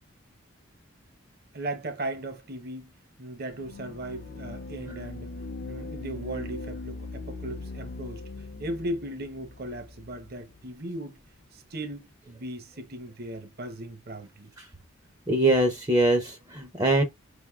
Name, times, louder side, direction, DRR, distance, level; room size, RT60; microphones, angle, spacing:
voice 1, 1.5-2.9 3.2-5.3 5.6-8.2 8.6-11.2 11.5-14.5, right 1 dB, 50° right, 0.8 m, -37 dB
sound 1, 3.5-10.7, left 3 dB, 45° left, 0.6 m, -40 dB
voice 2, 15.3-17.0, right 1 dB, 20° right, 0.6 m, -23 dB
5.1 x 3.5 x 2.3 m
head